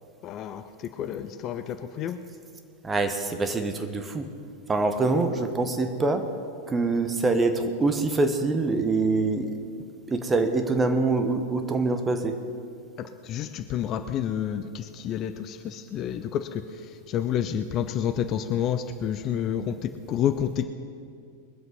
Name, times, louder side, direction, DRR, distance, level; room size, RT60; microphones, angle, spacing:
voice 1, 0.2-0.6 1.0-2.2 13.2-16.6 17.1-20.6, left 9 dB, 35° left, 9 dB, 0.6 m, -29 dB
voice 2, 2.8-4.3 4.7-6.3 6.7-9.5 10.1-12.3, right 3 dB, 15° right, 6 dB, 1.2 m, -25 dB
21.5 x 7.9 x 5.4 m, 2.4 s
figure-of-eight pair, 90°, 0 cm